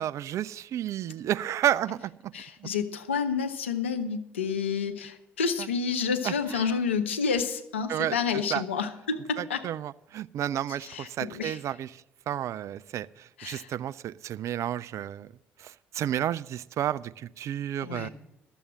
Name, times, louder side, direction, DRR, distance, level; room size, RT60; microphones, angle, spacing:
voice 1, 0.0-2.1 2.6-2.7 6.2-6.7 7.9-8.6 9.4-11.9 12.3-15.3 15.6-18.1, right 11 dB, 50° right, 17 dB, 0.4 m, -31 dB
voice 2, 2.3-9.6 10.8-11.6 13.4-13.7 17.8-18.1, left 6 dB, 85° left, 7 dB, 0.7 m, -29 dB
12.5 x 7.0 x 7.3 m, 0.86 s
figure-of-eight pair, 50°, 6 cm